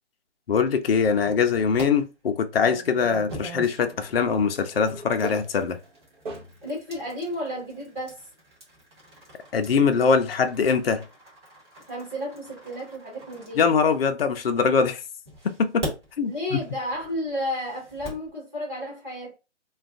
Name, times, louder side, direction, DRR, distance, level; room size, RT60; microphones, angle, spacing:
voice 1, 0.5-5.8 9.5-11.0 13.6-15.0 15.4-15.8 16.2-16.6, left 5 dB, 55° left, 0.5 m, -22 dB
sound 1, 1.0-1.8 2.6-14.6 15.3-18.3, right 1 dB, 20° right, 1.2 m, -42 dB
sound 2, 3.7-6.8 7.4-7.5 8.9-9.0, right 2 dB, 40° right, 0.8 m, -41 dB
voice 2, 6.6-8.2 11.9-13.7 16.3-19.4, left 1 dB, 5° right, 1.0 m, -32 dB
2.4 x 2.3 x 3.4 m
figure-of-eight pair, 160°, 36 cm